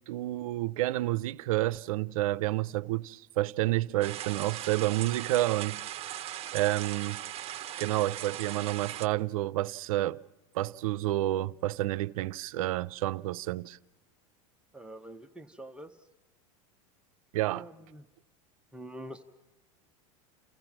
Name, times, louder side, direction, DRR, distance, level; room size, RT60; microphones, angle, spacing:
voice 1, 0.0-7.2 7.8-10.2 10.5-13.8 17.3-17.6, right 16 dB, 80° right, 0.6 m, -30 dB
sound 1, 4.0-9.1, right 12 dB, 35° right, 0.8 m, -39 dB
voice 2, 14.7-16.1 17.5-18.0 18.7-19.2, right 1 dB, 5° right, 0.7 m, -45 dB
29.0 x 15.0 x 6.0 m
supercardioid pair, 115°, 18 cm